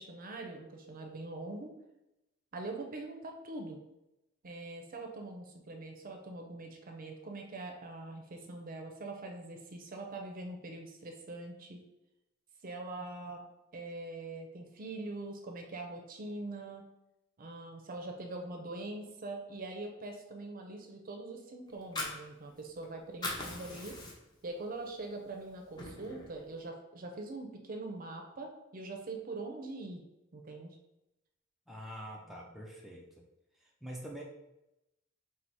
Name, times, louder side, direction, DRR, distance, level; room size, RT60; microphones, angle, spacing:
voice 1, 0.0-1.7 2.5-3.8 4.4-11.8 12.6-13.5 13.7-16.8 17.4-24.0 24.4-30.0 30.3-30.8, right 2 dB, 45° right, 3 dB, 0.6 m, -43 dB
Fire, 21.7-22.8 23.1-24.5 24.9-25.0 25.4-26.4, left 2 dB, 20° left, 0.8 m, -40 dB
voice 2, 31.7-33.2 33.6-34.2, equal, ahead, -2 dB, 0.4 m, -45 dB
4.5 x 2.0 x 4.1 m, 0.91 s
head